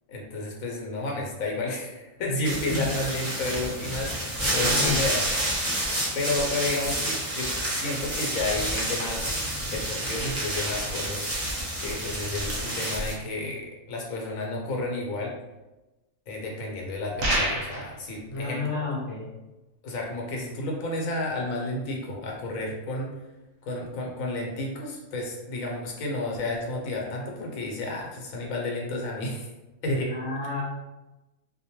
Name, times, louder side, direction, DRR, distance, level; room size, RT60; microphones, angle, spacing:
voice 1, 0.1-5.5 6.1-9.3 9.7-11.3 11.8-15.3 16.3-18.8 19.8-23.1 23.6-29.5 29.8-30.1, left 2 dB, 70° left, -1 dB, 1.1 m, -31 dB
sound 1, 2.4-13.1, right 1 dB, 20° right, 0.4 m, -29 dB
voice 2, 2.5-2.9 4.5-5.0 18.3-19.3 30.1-30.6, left 3 dB, 35° left, -7 dB, 0.5 m, -31 dB
sound 2, 17.2-17.9, right 1 dB, 55° right, 0.7 m, -26 dB
2.5 x 2.2 x 2.8 m, 1.0 s
omnidirectional pair, 1.5 m